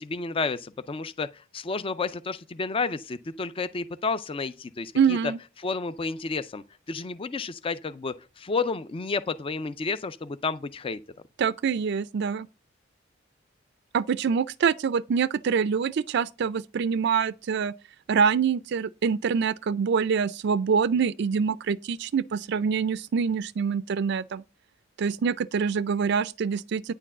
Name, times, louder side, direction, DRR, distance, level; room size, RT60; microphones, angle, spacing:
voice 1, 0.0-5.2 5.6-11.0, left 4 dB, 30° left, 0.4 m, -31 dB
voice 2, 5.0-5.4 11.4-12.5 13.9-17.7 18.1-24.4 25.0-26.9, right 6 dB, 60° right, 0.4 m, -25 dB
9.7 x 4.5 x 7.2 m
head